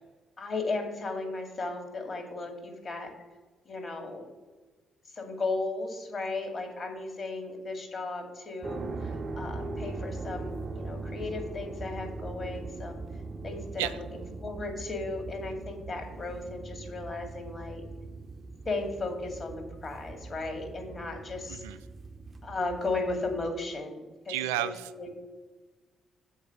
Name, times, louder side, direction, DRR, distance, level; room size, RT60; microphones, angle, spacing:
voice 1, 0.4-3.1 3.7-4.3 5.1-13.0 13.4-17.8 18.7-21.6 22.4-25.1, left 3 dB, 45° left, 3 dB, 2.4 m, -35 dB
sound 1, 8.6-23.5, right 3 dB, 35° right, 0.8 m, -40 dB
voice 2, 24.3-25.1, right 14 dB, 85° right, 13 dB, 0.3 m, -32 dB
7.2 x 4.7 x 6.7 m, 1.3 s
hypercardioid pair, 45°, 0 cm